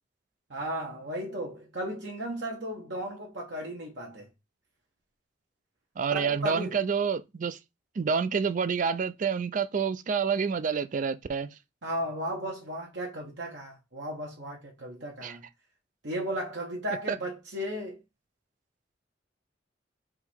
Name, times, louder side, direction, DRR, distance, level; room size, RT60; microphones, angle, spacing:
voice 1, 0.5-4.3 6.1-6.7 11.8-15.4 16.0-18.0, right 1 dB, 70° right, 1.1 m, -35 dB
voice 2, 6.0-7.6 8.0-11.5 15.2-15.4 17.1-17.2, right 6 dB, 45° right, 0.4 m, -28 dB
3.8 x 2.9 x 4.4 m
head